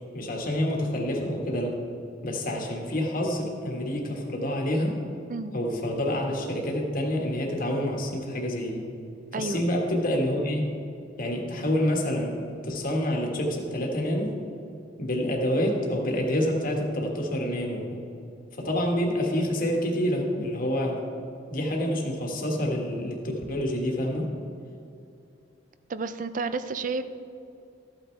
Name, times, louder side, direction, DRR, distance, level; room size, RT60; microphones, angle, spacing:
voice 1, 0.1-1.8 2.2-5.0 5.5-8.9 9.4-10.6 11.2-14.4 15.0-18.0 18.5-21.0 21.5-24.3, left 1 dB, 50° left, 0 dB, 1.6 m, -27 dB
voice 2, 9.3-9.6 25.9-27.0, right 4 dB, 45° right, 12 dB, 0.5 m, -31 dB
13.5 x 8.9 x 3.3 m, 2.6 s
head